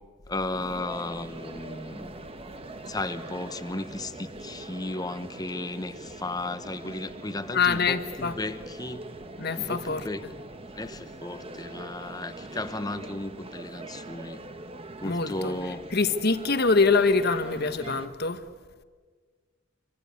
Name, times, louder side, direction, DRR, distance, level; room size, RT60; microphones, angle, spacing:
voice 1, 0.3-2.1 2.9-9.1 9.6-10.3 10.8-14.4 15.0-15.8, left 2 dB, 20° left, 1.0 m, -35 dB
sound 1, 0.5-18.1, right 2 dB, 30° right, 1.1 m, -42 dB
voice 2, 7.5-8.4 9.4-10.1 15.0-15.5 15.9-18.4, left 4 dB, 50° left, 1.3 m, -24 dB
26.0 x 25.0 x 8.4 m
head